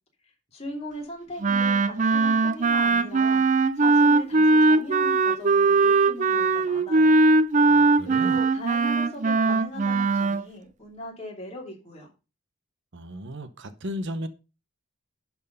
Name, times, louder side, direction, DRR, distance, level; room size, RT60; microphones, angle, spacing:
voice 1, 0.5-7.2 7.8-12.1, left 1 dB, 30° left, 2.9 m, -39 dB
Wind instrument woodwind instrument, 1.4-10.4, right 3 dB, 35° right, 0.4 m, -20 dB
voice 2, 7.6-8.4 12.9-14.3, equal, 55° right, 0.8 m, -35 dB
11.0 x 4.6 x 5.3 m
head